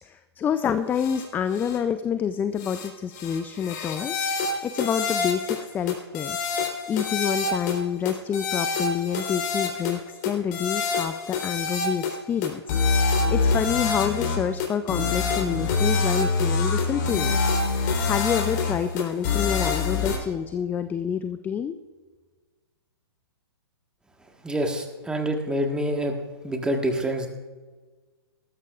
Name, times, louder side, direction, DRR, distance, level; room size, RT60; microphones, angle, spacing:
voice 1, 0.0-6.4 6.9-17.4 17.7-21.8, left 8 dB, 15° left, 11 dB, 0.4 m, -28 dB
sound 1, 0.9-1.2 1.5-1.8 2.6-2.9 3.1-5.6 5.9-7.8 8.1-10.0 10.2-12.2 12.4-20.2, left 4 dB, 45° left, 3.5 m, -26 dB
voice 2, 24.4-26.2 26.4-27.3, right 1 dB, 5° right, 3 dB, 1.5 m, -26 dB
19.0 x 13.5 x 2.5 m, 1.4 s
hypercardioid pair, 125°, 14 cm